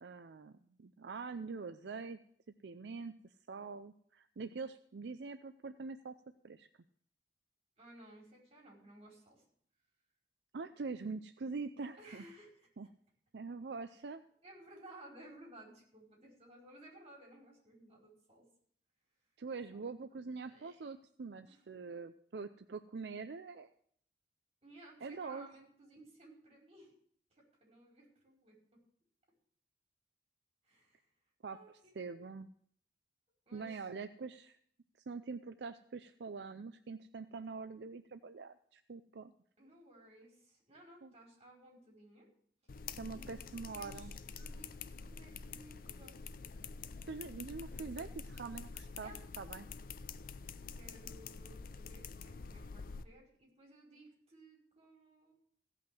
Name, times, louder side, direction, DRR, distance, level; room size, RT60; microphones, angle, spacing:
voice 1, 0.0-2.2 2.6-3.2 3.5-6.2 6.4-6.7 10.5-12.2 12.8-12.9 13.3-14.2 19.4-23.7 25.0-25.5 31.4-31.6 32.0-32.5 33.5-34.6 35.1-39.3 41.0-41.1 43.0-44.1 47.1-49.1 49.4-49.7, right 4 dB, 70° right, 10 dB, 0.5 m, -44 dB
voice 2, 7.8-9.4 12.0-12.7 14.4-18.5 19.7-19.8 20.4-20.9 21.5-21.6 24.6-26.9 27.3-28.8 30.6-31.0 31.5-32.0 33.5-33.7 39.6-42.3 43.1-46.2 47.9-48.1 49.0-49.2 50.7-55.3, right 1 dB, 35° right, -2 dB, 4.8 m, -58 dB
sound 1, 42.7-53.0, left 5 dB, 50° left, 0.5 m, -47 dB
16.0 x 5.8 x 7.6 m, 0.64 s
head